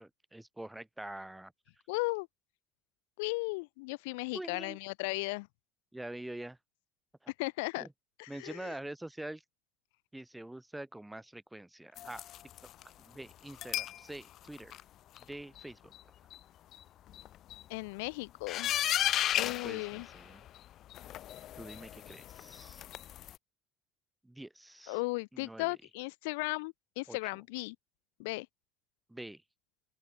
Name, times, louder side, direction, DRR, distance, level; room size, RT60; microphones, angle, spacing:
voice 1, 0.0-1.5 4.3-4.8 5.9-6.6 7.2-7.3 7.8-7.9 8.3-9.4 10.1-12.2 13.0-14.8 15.2-15.9 19.6-20.5 21.6-22.8 24.2-25.0 25.3-25.7 27.1-27.3 29.1-29.4, right 1 dB, 5° right, 2.4 m, -45 dB
voice 2, 1.9-2.3 3.2-5.5 7.4-7.9 8.2-8.7 17.7-18.7 19.3-20.1 24.9-27.7 28.2-28.5, left 27 dB, 90° left, 1.2 m, -36 dB
sound 1, 12.0-12.8 13.5-14.0 14.4-14.8 15.2-15.3 15.6-15.7 15.9-16.0 16.3-16.4 16.7-16.8 17.1-17.6 18.5-20.6 20.9-23.4, left 12 dB, 45° left, 1.5 m, -35 dB
open air
cardioid pair, 140°, 0 cm